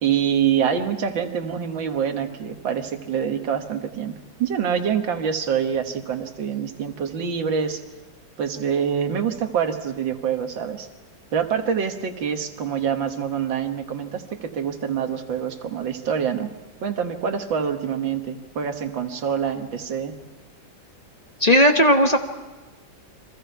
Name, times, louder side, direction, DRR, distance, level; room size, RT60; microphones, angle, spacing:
voice 1, 0.0-7.8 8.4-10.9 11.3-16.5 16.8-20.1, right 7 dB, 80° right, 6 dB, 2.2 m, -25 dB
voice 2, 21.4-22.2, equal, 25° left, 5 dB, 1.0 m, -15 dB
30.0 x 23.5 x 4.6 m, 1.2 s
omnidirectional pair, 2.0 m